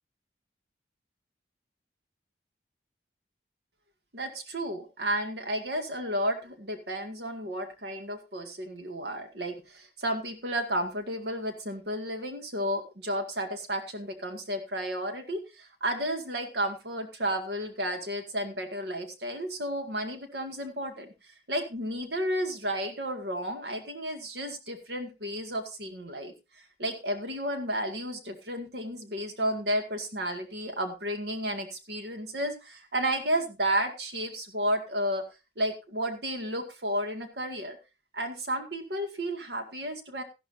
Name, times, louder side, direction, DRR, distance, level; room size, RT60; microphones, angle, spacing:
voice 1, 4.1-21.1 21.5-35.2 35.6-37.8 38.1-40.2, right 1 dB, 70° right, 5 dB, 2.0 m, -32 dB
14.5 x 12.0 x 2.7 m, 0.27 s
head